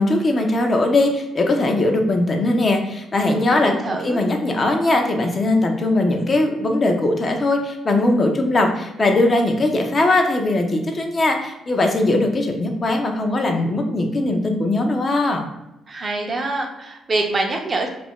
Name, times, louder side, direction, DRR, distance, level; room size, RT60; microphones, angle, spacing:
voice 1, 0.0-3.7 4.0-15.4, left 2 dB, 35° left, 3 dB, 0.5 m, -20 dB
voice 2, 3.5-4.2 15.9-17.9, right 2 dB, 35° right, 2 dB, 0.5 m, -25 dB
2.4 x 2.1 x 3.5 m, 0.91 s
cardioid pair, 90°, 0 cm